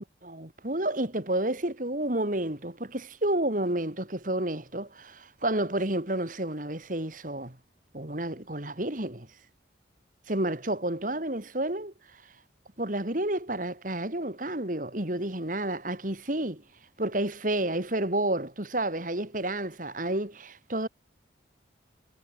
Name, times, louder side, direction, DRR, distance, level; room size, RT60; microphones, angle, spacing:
voice 1, 0.2-7.6 7.9-9.3 10.3-11.9 12.8-16.6 17.0-20.9, right 1 dB, 45° right, 2.7 m, -30 dB
head